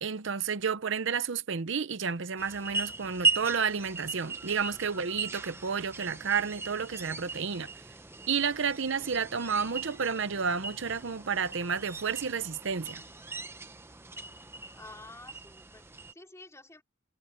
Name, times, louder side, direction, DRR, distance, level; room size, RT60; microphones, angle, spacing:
voice 1, 0.0-7.7 8.3-13.0, right 6 dB, 65° right, 0.8 m, -31 dB
sound 1, 2.4-16.1, right 3 dB, 10° right, 0.7 m, -37 dB
voice 2, 14.7-16.8, left 2 dB, 15° left, 3.8 m, -50 dB
head